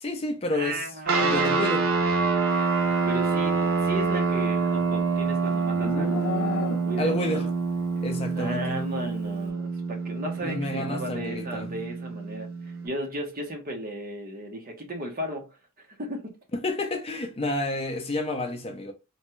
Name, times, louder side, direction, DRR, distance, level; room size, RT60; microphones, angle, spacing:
voice 1, 0.0-0.8 1.2-1.8 7.0-7.5 8.0-8.9 10.4-11.7 16.6-18.9, left 2 dB, 25° left, 0.4 m, -30 dB
voice 2, 0.5-1.7 3.1-7.5 8.3-15.5 16.0-16.3, right 1 dB, 40° right, 0.9 m, -35 dB
sound 1, 1.1-12.9, right 4 dB, 70° right, 0.6 m, -26 dB
Livestock farm animals working animals, 4.0-7.2, left 5 dB, 70° left, 0.5 m, -35 dB
3.0 x 2.2 x 3.0 m
head